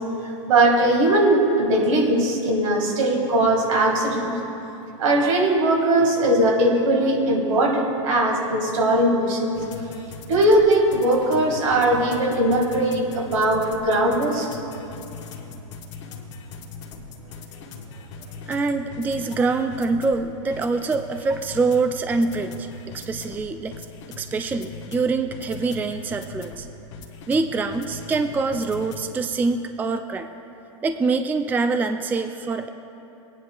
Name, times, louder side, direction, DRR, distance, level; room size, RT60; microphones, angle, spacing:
voice 1, 0.2-4.4 5.0-9.9 10.3-14.5, right 1 dB, 75° right, 1 dB, 1.9 m, -20 dB
sound 1, 9.5-29.1, left 4 dB, 60° left, 1.4 m, -40 dB
voice 2, 18.5-22.7 22.9-23.8 24.2-26.7 27.3-30.3 30.8-32.7, right 4 dB, 10° right, 8 dB, 0.3 m, -24 dB
18.5 x 9.7 x 2.3 m, 2.9 s
hypercardioid pair, 110°, 17 cm